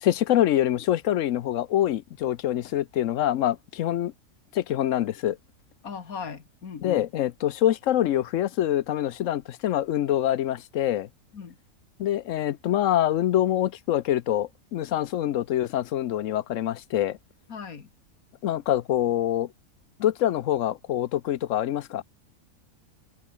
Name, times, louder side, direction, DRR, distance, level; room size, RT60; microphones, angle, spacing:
voice 1, 0.0-4.1 4.5-5.4 6.8-11.1 12.0-17.2 18.4-19.5 20.0-22.0, left 12 dB, 70° left, 1.0 m, -25 dB
voice 2, 5.8-7.0 11.3-11.6 17.5-17.9, left 6 dB, 85° left, 2.2 m, -38 dB
omnidirectional pair, 1.5 m